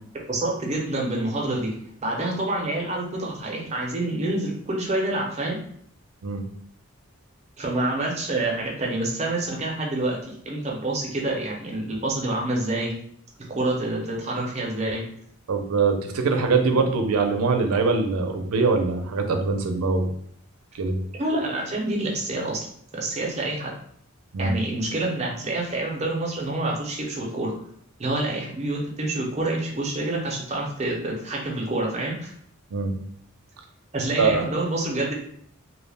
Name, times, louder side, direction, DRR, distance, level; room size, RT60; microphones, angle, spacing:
voice 1, 0.3-1.7 2.0-5.6 7.6-12.9 13.6-15.0 21.2-22.7 22.9-23.7 24.4-27.5 28.0-32.3 33.9-35.1, right 2 dB, 30° right, -2 dB, 0.5 m, -27 dB
voice 2, 15.5-20.1 20.8-21.0 24.3-24.5 32.7-32.9 34.2-34.4, right 4 dB, 85° right, 5 dB, 0.4 m, -23 dB
2.3 x 2.1 x 3.2 m, 0.64 s
head